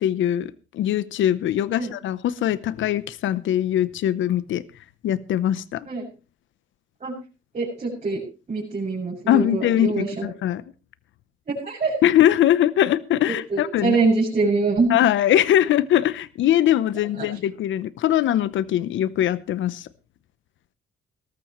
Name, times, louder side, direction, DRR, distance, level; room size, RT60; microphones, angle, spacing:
voice 1, 0.0-4.6 5.0-5.9 9.3-10.6 12.0-14.0 14.9-19.9, left 11 dB, 75° left, 18 dB, 0.8 m, -21 dB
voice 2, 7.5-8.2 8.5-10.3 11.5-12.0 13.5-14.9 17.2-17.3, right 4 dB, 40° right, -6 dB, 7.0 m, -24 dB
18.5 x 13.5 x 3.1 m, 0.31 s
cardioid pair, 90°, 20 cm